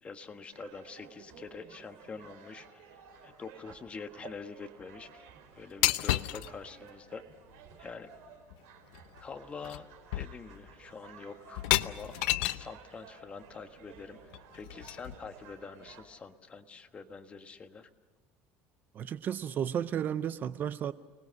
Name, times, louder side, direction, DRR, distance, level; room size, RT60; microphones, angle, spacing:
voice 1, 0.0-2.8 3.2-5.3 5.5-7.2 7.8-8.1 9.2-9.9 10.1-17.9, left 5 dB, 25° left, 7 dB, 1.4 m, -46 dB
sound 1, 0.5-16.0, right 6 dB, 65° right, 4.6 m, -54 dB
sound 2, 5.8-6.5 8.5-8.6 8.9-9.2 9.6-9.8 10.1-10.7 11.5-12.7 14.3-15.3, left 17 dB, 90° left, 0.7 m, -31 dB
voice 2, 18.9-20.9, right 9 dB, 35° right, 15 dB, 0.6 m, -33 dB
29.5 x 20.0 x 6.4 m, 1.4 s
cardioid pair, 135°, 5 cm